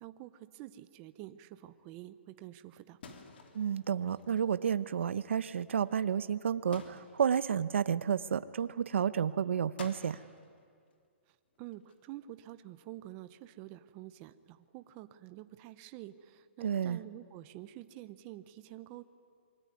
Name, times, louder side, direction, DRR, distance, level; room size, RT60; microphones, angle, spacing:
voice 1, 0.0-3.0 11.3-19.0, right 15 dB, 20° right, 12 dB, 0.7 m, -48 dB
sound 1, 3.0-4.5 5.8-6.2 6.7-7.5 9.8-11.1 11.5-12.2 13.0-13.3, left 4 dB, 55° left, 3.0 m, -53 dB
voice 2, 3.5-10.2 16.6-17.0, right 8 dB, 70° right, 15 dB, 0.9 m, -31 dB
26.5 x 23.0 x 9.7 m, 2.2 s
hypercardioid pair, 170°, 7 cm